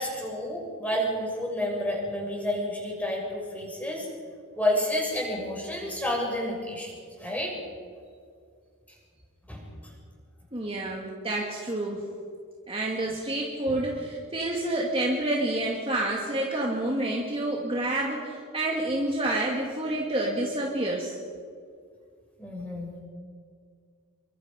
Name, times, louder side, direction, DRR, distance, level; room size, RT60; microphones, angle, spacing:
voice 1, 0.0-4.1 4.6-6.9 7.2-7.6 9.5-9.7 13.7-13.8 22.4-22.9, left 1 dB, 5° left, -3 dB, 7.0 m, -30 dB
voice 2, 10.5-12.1 12.7-21.2, right 1 dB, 25° right, -1 dB, 2.3 m, -28 dB
28.5 x 24.0 x 5.4 m, 2.2 s
head